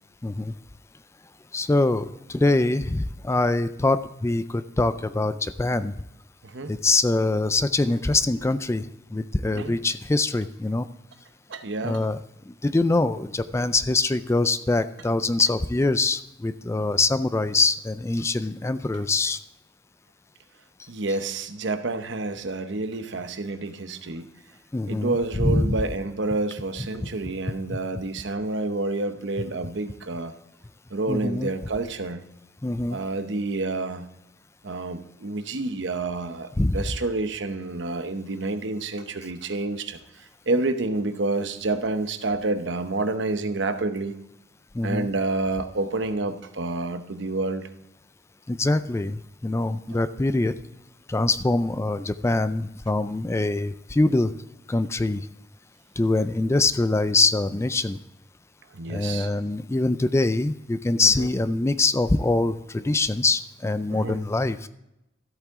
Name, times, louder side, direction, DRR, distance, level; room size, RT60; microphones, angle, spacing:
voice 1, 0.2-0.5 1.5-5.9 6.7-10.9 11.8-12.2 12.5-19.4 24.7-25.8 27.0-27.1 27.7-27.8 31.1-31.5 32.6-33.0 36.6-36.8 44.7-45.1 48.5-50.5 51.1-54.3 54.7-55.3 56.0-58.0 58.9-64.7, left 2 dB, 15° left, 13 dB, 0.3 m, -24 dB
voice 2, 9.4-9.7 11.5-12.0 20.9-24.3 24.9-30.3 30.9-32.2 32.9-34.1 34.6-40.0 40.5-44.1 44.8-47.7 49.9-50.0 58.7-59.3 61.0-61.3 63.9-64.2, right 2 dB, 70° right, 9 dB, 0.9 m, -29 dB
13.5 x 8.5 x 3.6 m, 0.88 s
head